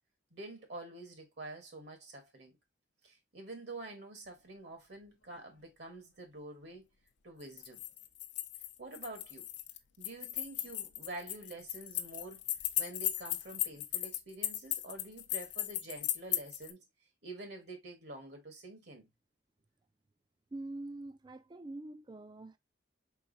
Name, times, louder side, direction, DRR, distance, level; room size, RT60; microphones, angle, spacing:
voice 1, 0.3-2.6 3.0-6.9 7.2-7.8 8.8-9.5 10.0-12.4 12.8-16.8 17.2-19.1, right 2 dB, 60° right, 1.2 m, -47 dB
sound 1, 7.4-16.7, left 14 dB, 65° left, 0.5 m, -37 dB
voice 2, 20.5-22.6, right 2 dB, 20° right, 0.3 m, -44 dB
4.7 x 3.9 x 2.5 m
head